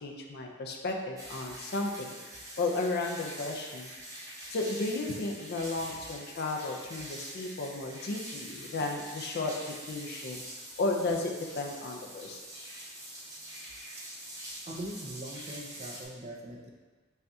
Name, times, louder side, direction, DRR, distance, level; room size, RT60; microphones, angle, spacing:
voice 1, 0.0-2.1 2.6-3.9 4.5-9.5 9.9-10.4 10.8-11.3 11.6-12.4, left 2 dB, 50° left, 2 dB, 0.5 m, -33 dB
sound 1, 1.2-16.0, right 1 dB, 15° right, 1.0 m, -45 dB
voice 2, 14.7-16.7, right 1 dB, 30° right, 0 dB, 0.4 m, -41 dB
5.5 x 2.4 x 2.7 m, 1.4 s
head